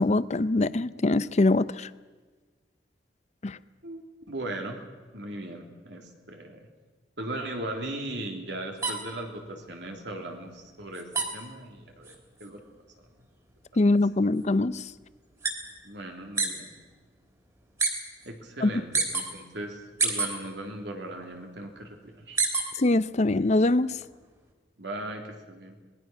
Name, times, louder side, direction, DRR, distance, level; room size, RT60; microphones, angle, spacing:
voice 1, 0.0-1.9 3.4-3.6 13.8-14.8 18.6-18.7 22.8-23.9, left 2 dB, 40° left, 16 dB, 0.6 m, -23 dB
voice 2, 3.8-4.8 5.1-6.7 7.2-12.1 12.4-12.6 15.8-16.7 18.2-22.4 24.8-25.8, right 1 dB, 70° right, 2 dB, 3.3 m, -38 dB
sound 1, 8.8-16.6 16.9-17.9 18.2-19.3 19.7-20.9 21.2-22.9 23.3-24.5, right 3 dB, 20° right, 3.3 m, -31 dB
26.0 x 20.0 x 6.2 m, 1.3 s
head